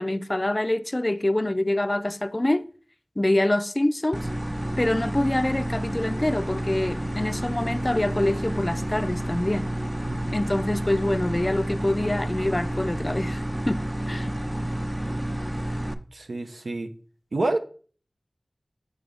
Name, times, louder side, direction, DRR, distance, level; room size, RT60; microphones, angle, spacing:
voice 1, 0.0-2.6 3.2-4.3 4.8-9.7 10.3-14.3, left 1 dB, 35° left, 0.4 m, -25 dB
sound 1, 4.1-15.9, right 1 dB, 20° right, 0.5 m, -30 dB
voice 2, 16.1-16.9 17.3-17.6, right 2 dB, 85° right, 0.6 m, -28 dB
7.6 x 3.9 x 3.4 m
wide cardioid pair, 40°, 0 cm